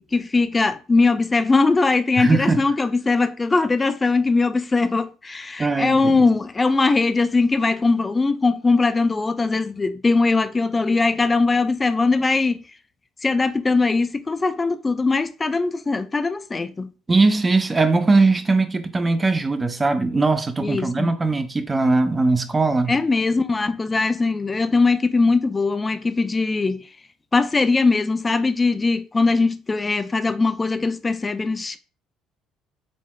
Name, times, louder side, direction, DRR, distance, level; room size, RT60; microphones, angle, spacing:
voice 1, 0.0-12.6 13.2-16.9 20.6-21.1 22.9-26.8 27.3-31.8, left 3 dB, 25° left, 0.4 m, -20 dB
voice 2, 2.2-2.6 5.6-6.2 17.1-23.0, right 3 dB, 25° right, 0.6 m, -20 dB
5.1 x 3.4 x 2.4 m
figure-of-eight pair, 55°, 0 cm